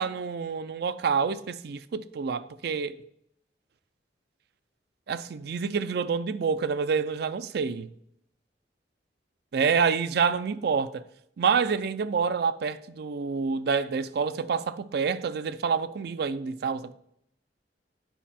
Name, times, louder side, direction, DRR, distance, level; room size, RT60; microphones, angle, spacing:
voice 1, 0.0-3.0 5.1-7.9 9.5-11.0 11.4-16.9, right 5 dB, 60° right, 0.4 m, -27 dB
9.3 x 5.0 x 4.2 m
head